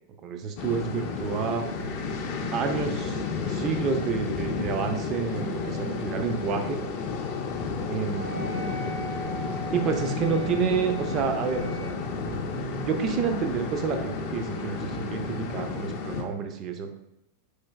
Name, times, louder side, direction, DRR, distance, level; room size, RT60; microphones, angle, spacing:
voice 1, 0.2-1.7 2.5-6.8 7.9-8.5 9.7-12.0 12.3-16.9, right 6 dB, 35° right, 5 dB, 0.4 m, -29 dB
sound 1, 0.6-16.2, left 5 dB, 45° left, 0.4 m, -32 dB
Wind instrument woodwind instrument, 8.1-12.1, right 2 dB, 70° right, 1.4 m, -40 dB
sound 2, 9.2-13.9, equal, 90° right, 0.4 m, -45 dB
4.3 x 3.2 x 2.2 m, 0.86 s
figure-of-eight pair, 90°, 0 cm